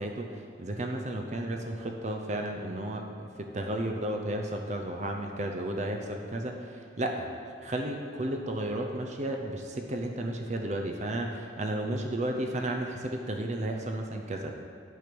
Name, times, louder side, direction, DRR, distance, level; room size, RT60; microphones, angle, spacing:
voice 1, 0.0-7.3 7.6-14.5, right 1 dB, 35° right, 3 dB, 0.6 m, -33 dB
9.5 x 6.1 x 5.2 m, 2.5 s
head